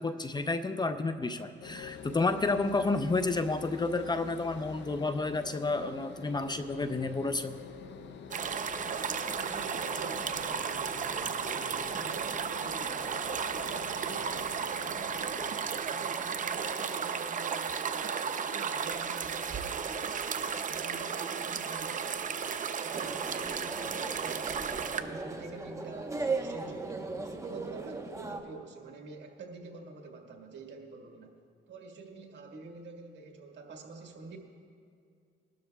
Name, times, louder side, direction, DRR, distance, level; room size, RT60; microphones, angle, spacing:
voice 1, 0.0-7.6, left 3 dB, 20° left, 9 dB, 0.5 m, -30 dB
sound 1, 1.6-17.3, left 6 dB, 65° left, 0.7 m, -47 dB
sound 2, 8.3-25.0, right 6 dB, 40° right, 0.6 m, -34 dB
voice 2, 9.2-13.3 13.5-15.5 15.9-22.5 22.8-27.1 27.4-31.4 31.7-34.4, right 4 dB, 65° right, 2 dB, 1.7 m, -47 dB
sound 3, 22.9-28.4, right 3 dB, 15° right, 1.0 m, -37 dB
22.0 x 12.0 x 2.3 m, 2.3 s
cardioid pair, 90°, 20 cm